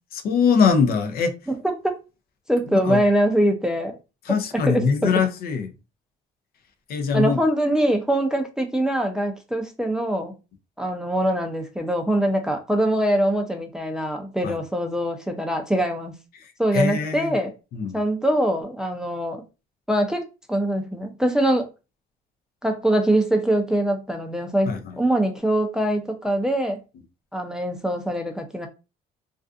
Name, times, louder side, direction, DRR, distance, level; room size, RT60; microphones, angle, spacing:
voice 1, 0.1-1.3 2.7-3.0 4.3-5.7 6.9-7.4 14.4-14.6 16.7-17.3 17.7-18.0 24.7-25.0, left 6 dB, 65° left, 0.5 m, -22 dB
voice 2, 1.5-1.9 2.5-4.0 4.5-5.1 7.1-10.3 10.8-16.2 16.6-17.5 17.9-19.4 19.9-20.2 20.5-21.7 22.6-26.8 27.3-28.7, right 1 dB, 5° right, 0.4 m, -23 dB
2.4 x 2.4 x 2.3 m
cardioid pair, 110°, 17 cm